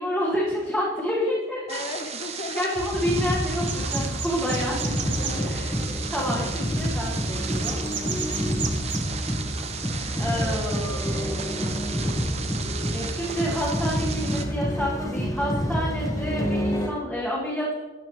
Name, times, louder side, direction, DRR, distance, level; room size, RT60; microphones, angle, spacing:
voice 1, 0.0-1.6 2.5-5.1 5.4-5.7 6.1-7.8 10.2-11.8 12.9-17.7, equal, ahead, -8 dB, 1.4 m, -29 dB
voice 2, 1.7-3.1 5.2-5.6 7.9-8.3, left 3 dB, 40° left, 6 dB, 0.5 m, -36 dB
sound 1, 1.7-14.4, right 6 dB, 35° right, 0.7 m, -35 dB
sound 2, 2.8-16.9, equal, 20° left, 1.1 m, -28 dB
sound 3, 3.6-16.9, right 5 dB, 70° right, 1.1 m, -39 dB
14.0 x 7.1 x 3.1 m, 1.3 s
head